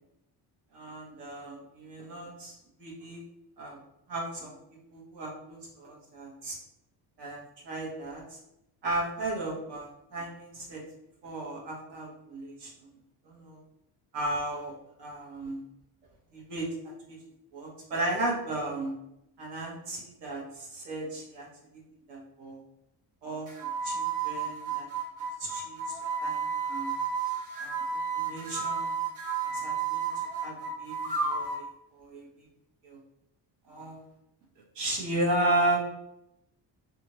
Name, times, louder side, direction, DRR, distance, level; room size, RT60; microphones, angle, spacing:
voice 1, 0.7-2.5 2.8-3.2 3.6-3.8 4.1-4.5 4.9-6.6 7.2-8.4 8.8-10.8 11.2-12.7 13.2-13.6 14.1-14.7 15.0-15.6 16.3-17.2 17.5-18.9 19.4-21.5 22.1-22.6 23.2-24.9 25.4-26.9 27.6-27.8 28.1-29.0 29.6-30.1 30.4-31.6 32.0-32.3 32.8-33.0 33.7-34.0 34.7-35.8, right 1 dB, 75° right, -2 dB, 1.1 m, -34 dB
sound 1, 23.5-31.6, right 5 dB, 50° right, 1.0 m, -32 dB
2.7 x 2.5 x 2.9 m, 0.83 s
cardioid pair, 110°, 41 cm